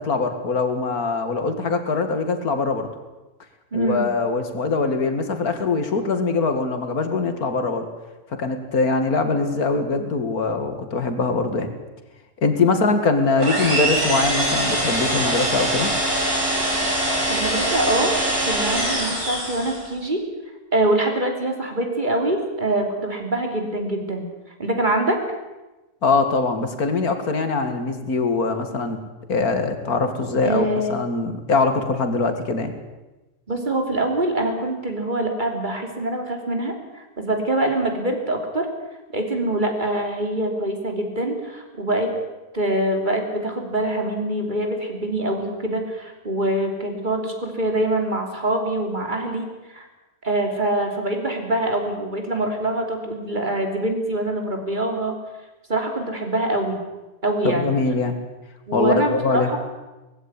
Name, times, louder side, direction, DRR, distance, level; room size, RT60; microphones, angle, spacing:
voice 1, 0.0-2.9 3.7-7.9 8.4-11.7 12.4-15.9 26.0-29.0 29.3-32.7 57.4-58.1 58.7-59.5, left 3 dB, 80° left, 7 dB, 2.6 m, -22 dB
voice 2, 3.7-4.1 12.7-12.9 17.3-18.1 18.4-20.2 20.7-24.3 24.6-25.4 30.4-31.0 33.5-38.7 39.1-42.1 42.5-49.9 50.2-55.2 55.7-56.8 57.2-57.8 58.7-59.6, right 1 dB, 30° right, 3 dB, 3.5 m, -24 dB
sound 1, 13.4-19.9, right 1 dB, 85° right, 7.5 m, -23 dB
20.0 x 15.5 x 9.9 m, 1.1 s
omnidirectional pair, 1.5 m